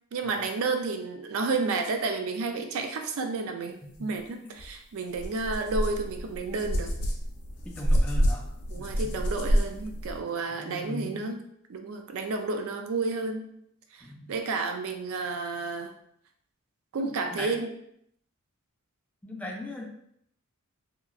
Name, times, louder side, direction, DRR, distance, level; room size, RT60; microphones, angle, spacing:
voice 1, 0.1-6.9 8.7-11.4 11.7-13.5 13.9-15.9 16.9-17.7, right 3 dB, 65° right, 5 dB, 0.4 m, -31 dB
sound 1, 4.6-4.7 5.1-10.2, equal, 80° left, 0.5 m, -28 dB
voice 2, 7.7-8.5 8.8-9.1 10.5-11.4 14.0-14.3 17.0-17.6 19.2-19.9, left 1 dB, 5° left, -1 dB, 0.3 m, -39 dB
2.8 x 2.3 x 2.4 m, 0.72 s
head